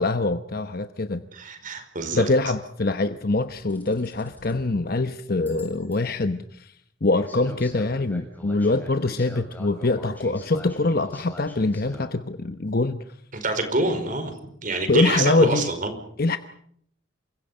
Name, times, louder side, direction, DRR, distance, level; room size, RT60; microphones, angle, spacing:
voice 1, 0.0-1.2 2.1-6.7 7.0-13.0 14.9-15.7 16.2-16.4, left 2 dB, 50° left, 9 dB, 1.0 m, -24 dB
voice 2, 1.3-2.3 13.3-14.3 14.6-15.9, right 2 dB, 40° right, 8 dB, 5.0 m, -26 dB
sound 1, 3.4-4.7 5.5-6.0 7.1-12.1, left 1 dB, 10° left, 7.4 m, -44 dB
28.0 x 25.0 x 5.6 m, 0.66 s
head